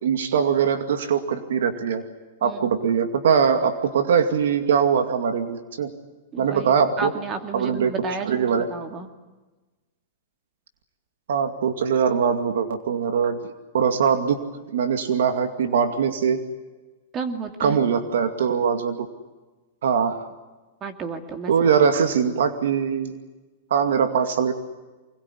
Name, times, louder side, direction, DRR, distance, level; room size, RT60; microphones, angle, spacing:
voice 1, 0.0-2.0 2.4-5.9 6.4-7.1 7.5-7.9 8.3-8.7 11.3-14.4 14.7-16.4 17.6-19.1 19.8-20.3 21.5-23.2 23.7-24.5, right 7 dB, 80° right, 8 dB, 2.4 m, -22 dB
voice 2, 2.4-2.8 6.3-9.1 17.1-17.9 20.8-21.5, right 4 dB, 25° right, 7 dB, 2.5 m, -32 dB
24.5 x 21.5 x 9.9 m, 1.2 s
hypercardioid pair, 145°, 0 cm